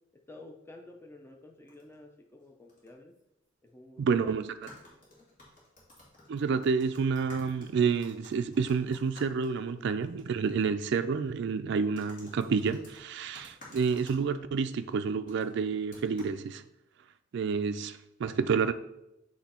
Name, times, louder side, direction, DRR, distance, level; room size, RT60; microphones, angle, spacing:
voice 1, 0.1-3.1 3.6-4.4 4.9-5.0, left 1 dB, 10° left, 0.5 m, -51 dB
sound 1, 1.7-1.9 2.7-2.9 3.1-3.2 4.5-10.2 10.5-10.6 12.0-14.2 15.3-15.5 15.9-16.3, left 1 dB, 45° left, 2.1 m, -53 dB
voice 2, 4.0-4.5 6.3-16.6 17.3-18.7, right 5 dB, 60° right, 0.3 m, -29 dB
8.0 x 3.1 x 4.3 m
head